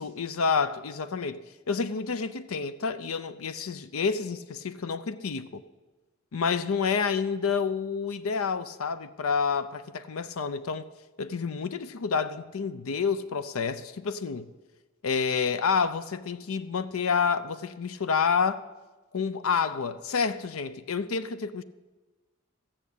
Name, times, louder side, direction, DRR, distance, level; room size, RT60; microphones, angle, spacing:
voice 1, 0.0-1.4 1.7-5.6 6.3-10.8 11.2-14.5 15.0-18.6 19.1-21.6, left 5 dB, 80° left, 0.6 m, -29 dB
15.5 x 7.2 x 8.3 m
head